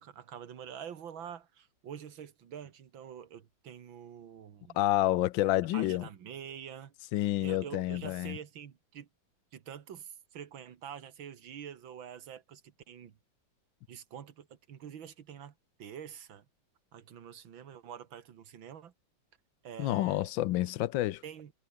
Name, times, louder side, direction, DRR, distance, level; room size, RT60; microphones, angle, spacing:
voice 1, 0.0-4.8 5.7-9.1 9.5-13.2 13.9-15.5 15.8-16.5 16.9-18.9 19.6-20.3 21.2-21.5, right 8 dB, 85° right, 2.3 m, -46 dB
voice 2, 4.7-6.1 7.1-8.4 19.8-21.2, left 15 dB, 85° left, 1.4 m, -29 dB
omnidirectional pair, 2.1 m